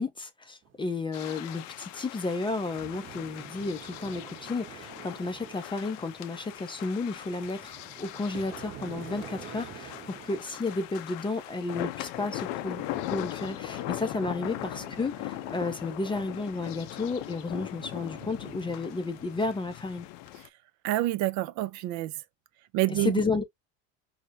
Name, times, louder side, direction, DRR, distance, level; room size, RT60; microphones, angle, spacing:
voice 1, 0.0-12.8 13.1-20.1 23.0-23.4, left 3 dB, 15° left, 0.4 m, -32 dB
sound 1, 0.6-19.5, right 8 dB, 35° right, 1.0 m, -49 dB
sound 2, 1.1-20.5, left 15 dB, 70° left, 0.5 m, -40 dB
voice 2, 20.8-22.2 22.7-23.2, right 16 dB, 60° right, 0.5 m, -27 dB
4.3 x 2.0 x 2.5 m
supercardioid pair, 100°, 33 cm